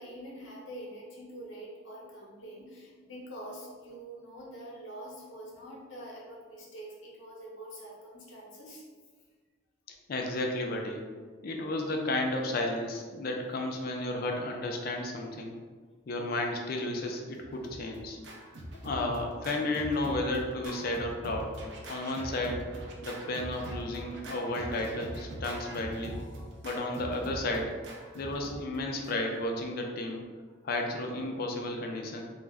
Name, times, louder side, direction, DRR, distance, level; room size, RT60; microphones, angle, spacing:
voice 1, 0.0-8.8 28.1-28.2 30.5-30.6, right 1 dB, 75° left, -3 dB, 0.7 m, -45 dB
voice 2, 9.9-11.0 11.4-15.5 16.1-18.2 18.8-21.6 21.9-22.7 23.0-26.1 26.6-27.7 28.1-30.2 30.6-32.2, left 2 dB, 50° left, 2 dB, 0.4 m, -33 dB
Scratching (performance technique), 17.3-29.4, right 1 dB, 65° right, 0.4 m, -42 dB
2.3 x 2.0 x 3.3 m, 1.5 s
head